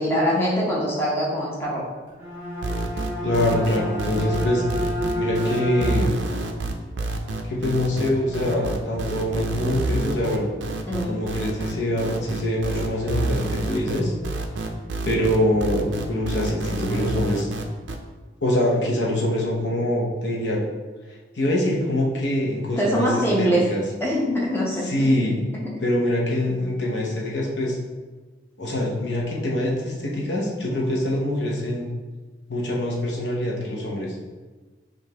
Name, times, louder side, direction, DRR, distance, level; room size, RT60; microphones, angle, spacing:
voice 1, 0.0-1.8 10.9-11.2 22.8-23.7 24.0-24.9 25.5-25.6, equal, 15° left, -4 dB, 0.7 m, -23 dB
Bowed string instrument, 2.1-6.4, equal, 15° right, 1.1 m, -30 dB
sound 1, 2.6-18.0, right 2 dB, 75° right, 0.4 m, -28 dB
voice 2, 3.2-4.6 5.1-6.2 7.5-10.5 11.0-14.1 15.0-17.5 18.4-20.6 21.3-23.8 24.8-25.4 25.8-27.8 28.6-31.9 32.5-34.1, left 1 dB, 75° left, -3 dB, 0.8 m, -24 dB
4.9 x 2.5 x 2.9 m, 1.3 s
head